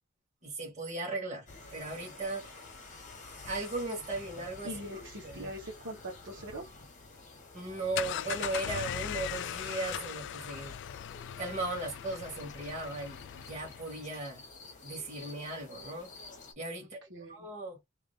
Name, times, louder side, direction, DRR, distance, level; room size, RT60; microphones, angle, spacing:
voice 1, 0.4-2.5 3.4-4.7 5.2-5.5 7.5-10.7 11.4-14.4 14.8-16.1 16.6-17.8, right 2 dB, 35° right, 1.7 m, -37 dB
sound 1, 1.5-16.5, left 3 dB, 35° left, 1.3 m, -50 dB
voice 2, 4.6-6.6 16.8-17.5, equal, 60° right, 1.5 m, -43 dB
sound 2, 7.7-14.0, left 10 dB, 55° left, 0.3 m, -39 dB
3.3 x 2.9 x 3.3 m
head